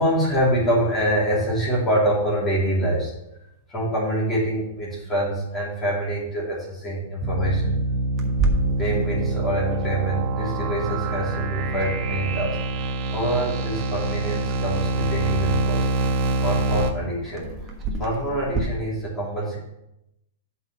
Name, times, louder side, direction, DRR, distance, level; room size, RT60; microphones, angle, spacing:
voice 1, 0.0-3.1 3.7-7.8 8.8-17.7 18.0-19.6, right 1 dB, 20° left, -7 dB, 3.0 m, -25 dB
sound 1, 7.2-16.9, right 2 dB, 40° right, 0.9 m, -25 dB
Clock, 8.2-18.6, right 3 dB, 25° right, 1.2 m, -33 dB
7.8 x 4.2 x 6.3 m, 0.85 s
hypercardioid pair, 135°, 0 cm